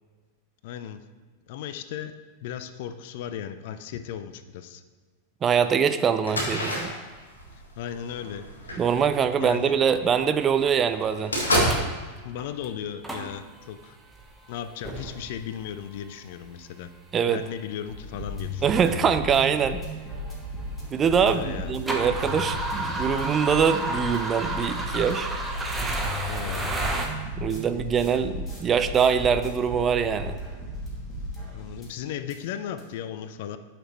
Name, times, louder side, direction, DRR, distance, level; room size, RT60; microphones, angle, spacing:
voice 1, 0.6-1.0 1.5-2.1 2.4-4.8 7.8-8.8 9.4-9.8 12.2-14.0 14.5-16.9 17.3-18.9 21.2-21.7 26.3-26.7 31.5-33.6, left 9 dB, 50° left, 11 dB, 0.4 m, -36 dB
voice 2, 5.4-6.9 8.8-11.8 17.1-17.4 18.6-19.8 20.9-25.3 27.4-30.4, right 7 dB, 25° right, 10 dB, 0.4 m, -23 dB
sound 1, 6.2-10.1 10.5-10.6 10.9-11.8, equal, 75° left, 1.6 m, -28 dB
sound 2, 11.0-11.1 11.5-12.0 12.4-12.7 13.0-13.7 14.2-14.4 14.8-15.5 16.5-16.6 17.5-17.6 18.0-18.1 18.7-18.8 19.1-21.0 21.3-27.1, right 2 dB, 10° right, 1.0 m, -31 dB
sound 3, 17.9-32.0 32.3-32.4 32.8-32.9, equal, 20° left, 2.1 m, -35 dB
9.0 x 5.8 x 3.1 m, 1.4 s
figure-of-eight pair, 90°, 0 cm